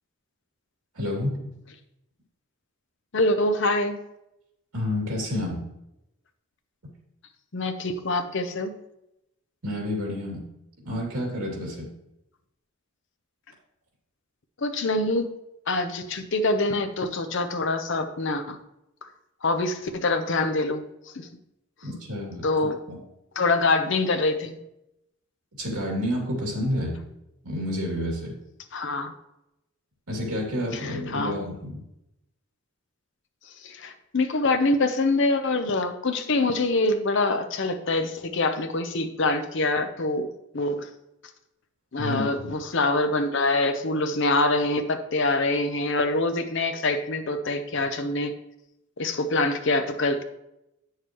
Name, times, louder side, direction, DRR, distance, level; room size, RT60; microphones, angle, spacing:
voice 1, 0.9-1.5 4.7-5.7 9.6-10.4 10.8-11.9 21.8-22.5 22.9-23.0 25.6-27.0 27.4-28.3 30.1-31.8 42.0-42.5, left 1 dB, 90° right, -1 dB, 2.6 m, -29 dB
voice 2, 3.1-4.0 7.5-8.7 14.6-15.3 15.7-18.6 19.4-20.9 21.2-21.3 22.4-22.8 23.4-24.6 28.7-29.1 30.8-31.4 33.6-40.9 41.9-48.3 49.0-50.2, left 2 dB, 55° left, 7 dB, 0.7 m, -25 dB
8.5 x 6.6 x 3.0 m, 0.84 s
head